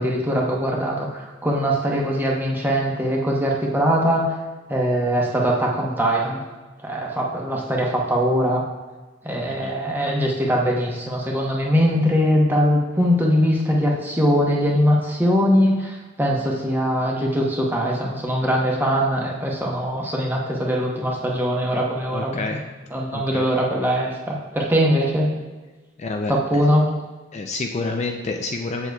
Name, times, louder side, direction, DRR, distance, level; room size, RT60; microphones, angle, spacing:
voice 1, 0.0-4.4 4.7-6.4 6.8-8.6 9.2-22.6 22.9-25.3 26.3-26.9, equal, 10° right, -2 dB, 0.9 m, -21 dB
voice 2, 22.1-22.6 23.1-23.5 26.0-26.4 27.3-28.9, left 3 dB, 35° left, 3 dB, 0.4 m, -28 dB
7.9 x 7.1 x 2.3 m, 1.3 s
head